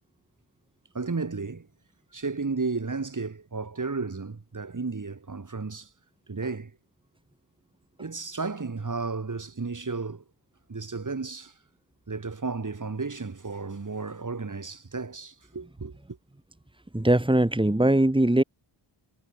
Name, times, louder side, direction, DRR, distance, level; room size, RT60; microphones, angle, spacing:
voice 1, 0.9-1.7 2.1-5.9 6.3-6.7 8.0-10.2 10.7-11.5 12.1-16.0, right 4 dB, 40° right, 6.1 m, -33 dB
voice 2, 16.9-18.4, right 1 dB, 10° right, 4.6 m, -21 dB
wide cardioid pair, 120°, 45 cm